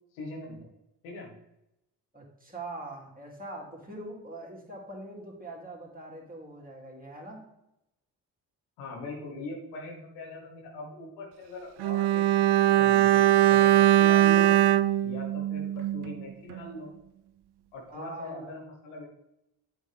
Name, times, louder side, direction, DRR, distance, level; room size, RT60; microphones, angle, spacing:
voice 1, 0.1-0.7 1.0-1.4 8.8-12.3 12.6-14.6 15.0-16.9 17.7-19.1, left 2 dB, 85° left, 1 dB, 1.5 m, -41 dB
voice 2, 2.1-7.5 17.9-18.5, right 2 dB, 20° right, -2 dB, 3.0 m, -42 dB
Bowed string instrument, 11.8-16.2 16.5-16.6, right 13 dB, 60° right, 0.5 m, -21 dB
8.1 x 5.9 x 3.5 m, 0.86 s
hypercardioid pair, 40°, 46 cm